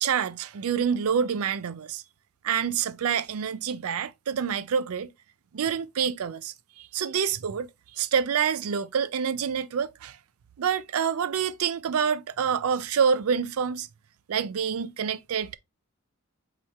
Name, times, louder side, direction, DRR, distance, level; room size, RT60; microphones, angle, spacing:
voice 1, 0.0-2.0 2.4-5.1 5.5-10.2 10.6-13.9 14.3-15.6, right 7 dB, 75° right, 0.4 m, -27 dB
4.1 x 3.1 x 3.4 m
head